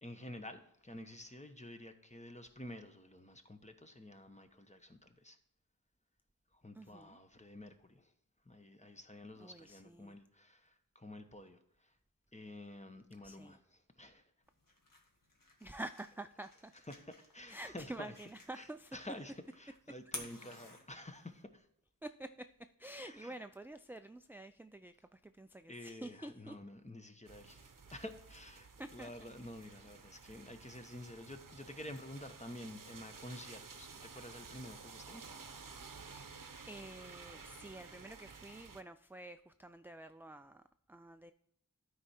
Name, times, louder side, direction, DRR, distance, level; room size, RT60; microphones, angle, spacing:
voice 1, 0.0-5.4 6.5-8.1 8.4-11.9 12.3-13.6 14.0-14.3 16.9-18.1 18.6-18.7 18.9-21.7 23.1-23.3 25.7-35.2, left 1 dB, 20° left, 1.0 m, -50 dB
voice 2, 6.7-7.2 9.4-10.2 13.2-13.6 15.6-16.7 17.5-19.0 22.0-26.6 28.8-29.3 36.0-41.3, right 1 dB, 5° right, 0.3 m, -49 dB
sound 1, 14.4-21.4, left 1 dB, 70° left, 1.8 m, -53 dB
sound 2, 27.3-38.8, right 5 dB, 70° right, 0.8 m, -53 dB
12.0 x 4.8 x 4.3 m
wide cardioid pair, 50°, 34 cm